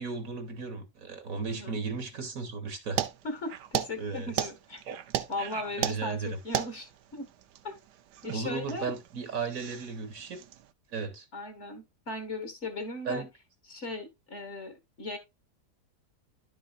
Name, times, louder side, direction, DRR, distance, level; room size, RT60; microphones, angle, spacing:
voice 1, 0.0-3.0 4.0-4.5 4.9-5.0 5.8-6.4 8.3-10.4 10.9-11.3 13.0-13.3, right 5 dB, 60° right, 1.6 m, -35 dB
voice 2, 1.5-1.8 3.2-4.8 5.3-7.3 7.6-7.8 8.2-8.9 11.3-13.2 13.7-15.2, left 2 dB, 45° left, 2.0 m, -37 dB
sound 1, 3.0-10.7, right 11 dB, 80° right, 1.3 m, -36 dB
11.0 x 6.1 x 2.4 m
omnidirectional pair, 1.8 m